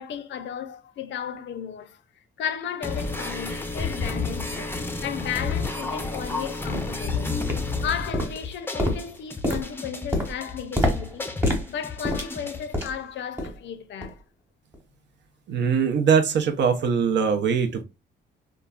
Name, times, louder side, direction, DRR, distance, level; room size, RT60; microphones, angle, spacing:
voice 1, 0.0-2.0 2.4-4.7 5.0-7.4 7.8-11.3 11.7-14.2, left 8 dB, 65° left, 0.5 m, -34 dB
sound 1, 2.8-12.8, left 3 dB, 10° left, 0.5 m, -31 dB
sound 2, 4.7-4.8 5.4-5.5 6.0-6.2 6.7-7.0 7.4-7.9 8.1-13.1 13.4-13.7 14.0-14.2 14.7-14.8, left 1 dB, 10° right, 1.1 m, -28 dB
voice 2, 15.5-17.8, right 6 dB, 65° right, 0.6 m, -22 dB
3.0 x 2.3 x 2.3 m
cardioid pair, 90°, 20 cm